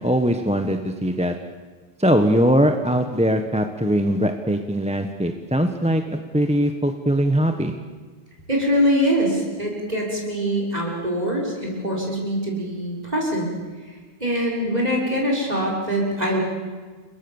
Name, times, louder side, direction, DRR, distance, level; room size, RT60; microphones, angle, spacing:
voice 1, 0.0-1.3 2.0-7.7, equal, 5° right, 6 dB, 1.2 m, -21 dB
voice 2, 8.5-13.5 14.2-16.4, equal, 40° right, -2 dB, 6.0 m, -23 dB
30.0 x 22.5 x 7.2 m, 1.4 s
omnidirectional pair, 1.1 m